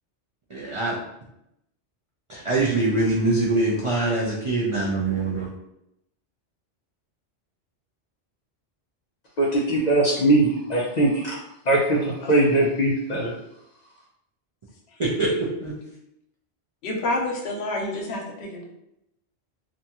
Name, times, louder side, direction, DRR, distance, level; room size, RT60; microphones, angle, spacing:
voice 1, 0.5-1.0 2.3-5.5 15.0-15.3 15.6-15.7, right 2 dB, 55° right, -6 dB, 0.3 m, -23 dB
voice 2, 9.4-11.4 11.7-13.3, right 2 dB, 55° left, -3 dB, 0.5 m, -21 dB
voice 3, 16.8-18.6, left 1 dB, 75° left, 0 dB, 0.9 m, -28 dB
2.5 x 2.3 x 2.8 m, 0.80 s
omnidirectional pair, 1.2 m